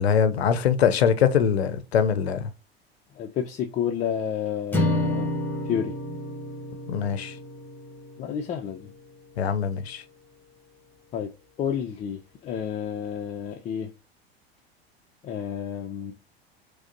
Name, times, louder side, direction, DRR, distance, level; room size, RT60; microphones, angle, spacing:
voice 1, 0.0-2.5 6.9-7.4 9.4-10.0, left 7 dB, 85° left, 0.5 m, -22 dB
voice 2, 3.2-5.3 5.6-5.9 8.2-8.9 11.1-11.3 11.6-13.9 15.2-16.1, left 8 dB, 25° left, 0.3 m, -30 dB
sound 1, 4.7-9.1, left 1 dB, 5° left, 0.9 m, -30 dB
4.7 x 2.0 x 2.6 m
hypercardioid pair, 80°, 31 cm